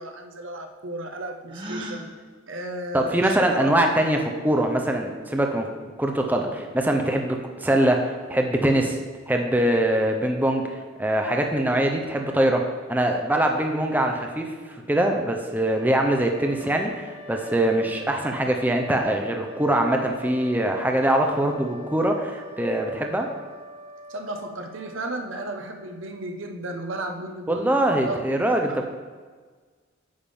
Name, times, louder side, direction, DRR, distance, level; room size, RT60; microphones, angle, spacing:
voice 1, 0.0-2.1 2.5-3.9 24.1-28.2 28.7-28.8, right 1 dB, 70° right, 4 dB, 0.9 m, -34 dB
Gasp, 1.5-2.0, right 1 dB, 25° right, 0.9 m, -34 dB
voice 2, 2.9-5.7 6.0-9.0 9.3-23.3 27.5-28.9, right 1 dB, 10° right, 3 dB, 0.6 m, -23 dB
sound 1, 15.6-26.5, left 1 dB, 35° left, 1.9 m, -44 dB
8.9 x 3.6 x 6.9 m, 1.5 s
head